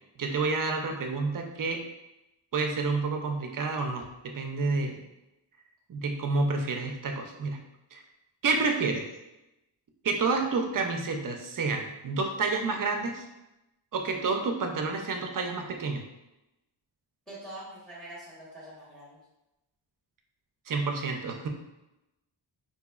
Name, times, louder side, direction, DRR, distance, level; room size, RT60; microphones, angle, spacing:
voice 1, 0.2-1.8 2.5-5.0 5.9-7.6 7.9-8.0 8.4-9.1 10.0-13.2 13.9-16.0 20.7-21.5, right 3 dB, 45° right, 3 dB, 0.5 m, -29 dB
voice 2, 17.3-19.2, right 1 dB, ahead, -7 dB, 1.1 m, -44 dB
3.8 x 2.7 x 2.3 m, 0.95 s
wide cardioid pair, 105°, 47 cm